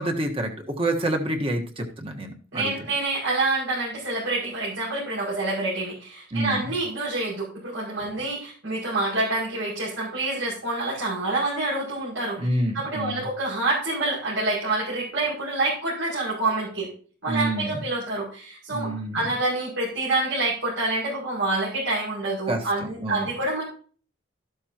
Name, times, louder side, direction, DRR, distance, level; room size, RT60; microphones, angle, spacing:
voice 1, 0.0-2.7 6.3-6.7 12.4-13.3 17.3-17.8 18.7-19.2 22.5-23.3, right 1 dB, 30° right, 3 dB, 1.5 m, -28 dB
voice 2, 2.5-16.9 17.2-23.6, right 2 dB, 80° right, -6 dB, 6.3 m, -27 dB
13.5 x 12.0 x 3.0 m, 0.43 s
head